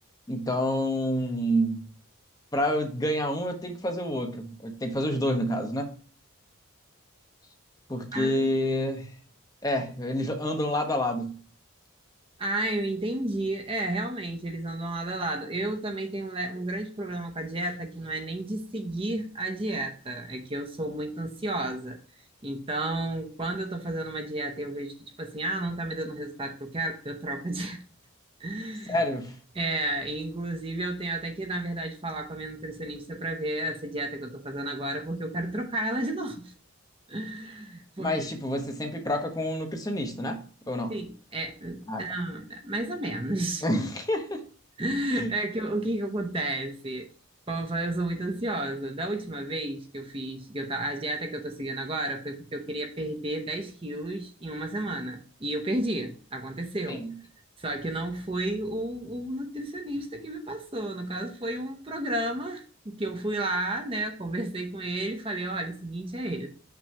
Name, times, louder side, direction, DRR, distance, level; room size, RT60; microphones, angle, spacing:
voice 1, 0.3-1.9 2.5-5.9 7.9-9.2 9.6-11.3 28.9-29.4 38.0-40.4 40.7-40.9 41.9-42.0 43.6-44.4 45.1-45.3 56.9-57.1, equal, 15° left, 3 dB, 0.9 m, -28 dB
voice 2, 8.1-8.5 12.4-22.0 22.4-27.8 28.4-29.0 29.5-36.5 37.1-38.1 40.9-43.6 44.8-47.1 47.5-57.0 57.6-66.5, right 1 dB, 25° right, 4 dB, 0.7 m, -32 dB
6.0 x 3.0 x 5.5 m, 0.41 s
head